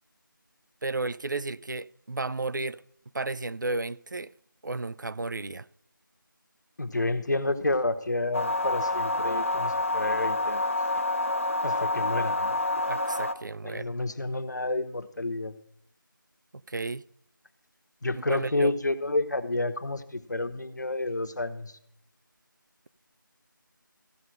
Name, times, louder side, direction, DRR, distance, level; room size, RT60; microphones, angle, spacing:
voice 1, 0.8-2.8 3.1-4.3 4.6-5.7 12.9-13.9 16.7-17.0 18.1-18.7, right 3 dB, 60° right, 0.4 m, -33 dB
voice 2, 6.8-10.6 11.6-12.6 13.6-15.5 18.0-21.7, left 2 dB, 55° left, 1.0 m, -30 dB
sound 1, 8.3-13.3, left 2 dB, 40° left, 0.6 m, -28 dB
14.5 x 5.4 x 7.7 m
figure-of-eight pair, 175°, 11 cm